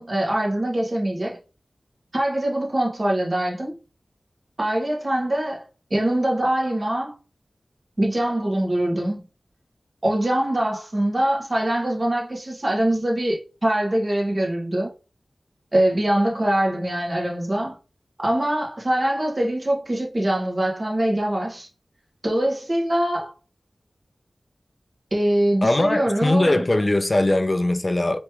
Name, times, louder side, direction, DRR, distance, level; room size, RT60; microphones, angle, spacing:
voice 1, 0.0-1.4 2.1-3.7 4.6-5.6 5.9-7.1 8.0-9.2 10.0-14.9 15.7-17.8 18.2-21.7 22.2-23.3 25.1-26.6, right 1 dB, 35° right, 1.4 m, -23 dB
voice 2, 25.6-28.2, left 1 dB, 35° left, 0.5 m, -20 dB
3.1 x 3.1 x 4.7 m
wide cardioid pair, 85°, 0 cm